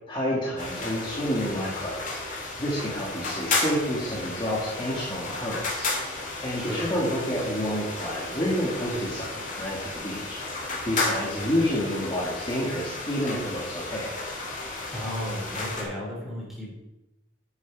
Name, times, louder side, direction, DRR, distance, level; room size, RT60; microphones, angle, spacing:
voice 1, 0.1-9.3 9.6-14.2, equal, 25° left, -6 dB, 2.1 m, -29 dB
sound 1, 0.6-15.8, left 3 dB, 40° left, 2.4 m, -33 dB
voice 2, 14.9-16.7, equal, ahead, -6 dB, 4.0 m, -34 dB
10.0 x 8.0 x 4.8 m, 0.92 s
head